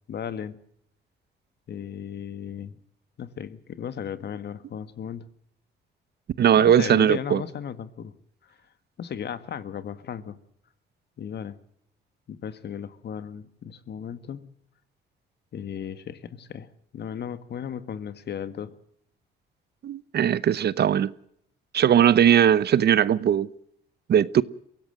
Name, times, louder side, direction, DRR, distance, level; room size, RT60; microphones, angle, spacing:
voice 1, 0.1-0.6 1.7-2.8 3.2-5.3 6.6-8.1 8.4-8.5 9.0-10.4 11.2-11.6 12.3-14.5 15.5-16.7 16.9-18.7, left 8 dB, 60° left, 1.6 m, -35 dB
voice 2, 6.4-7.4 19.8-21.1 21.7-23.5 24.1-24.4, right 9 dB, 55° right, 0.8 m, -19 dB
23.5 x 16.5 x 7.7 m
cardioid pair, 90°, 20 cm